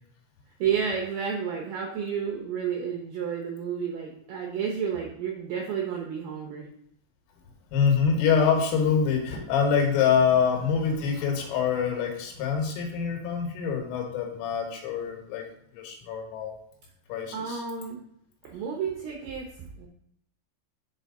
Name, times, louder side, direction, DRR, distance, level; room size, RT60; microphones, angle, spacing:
voice 1, 0.6-6.7 17.3-18.0 18.4-19.9, right 7 dB, 80° right, 1 dB, 2.3 m, -31 dB
voice 2, 7.7-15.4 15.7-16.6 17.1-17.6, left 6 dB, 80° left, 2 dB, 3.9 m, -25 dB
9.8 x 5.4 x 3.9 m, 0.73 s
omnidirectional pair, 5.8 m